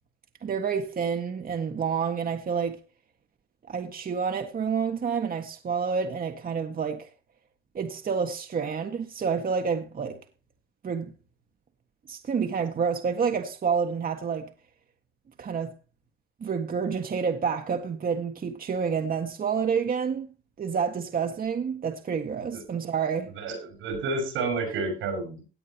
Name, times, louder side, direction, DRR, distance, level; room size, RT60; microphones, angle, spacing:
voice 1, 0.4-2.8 3.7-7.1 7.7-10.2 10.8-11.1 12.1-14.5 15.4-15.7 16.4-20.3 20.6-23.3, right 6 dB, 45° right, 1.6 m, -28 dB
voice 2, 23.3-25.4, right 3 dB, 90° right, 6.6 m, -30 dB
17.5 x 9.1 x 3.0 m
cardioid pair, 90°, 20 cm